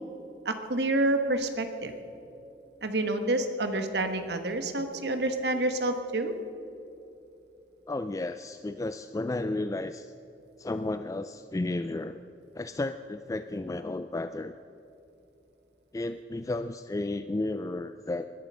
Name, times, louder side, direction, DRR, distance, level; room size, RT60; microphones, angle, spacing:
voice 1, 0.4-1.9 2.8-6.3, right 2 dB, 65° right, 7 dB, 1.4 m, -28 dB
voice 2, 7.9-10.1 10.6-12.2 12.5-14.6 15.9-18.3, left 2 dB, 20° left, 11 dB, 0.3 m, -33 dB
20.5 x 11.5 x 5.6 m, 2.9 s
head